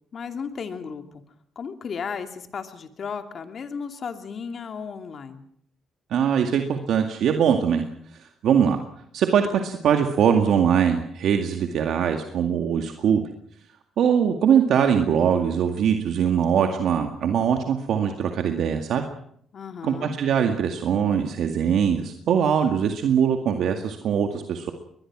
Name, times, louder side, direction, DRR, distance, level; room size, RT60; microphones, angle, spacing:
voice 1, 0.1-1.2 1.6-5.4 19.5-20.2, left 6 dB, 50° left, 6 dB, 2.6 m, -34 dB
voice 2, 6.1-7.8 8.4-8.8 9.1-13.3 14.0-19.0 19.8-24.7, right 8 dB, 75° right, 4 dB, 2.0 m, -22 dB
23.0 x 21.0 x 6.2 m, 0.67 s
cardioid pair, 90°, 0 cm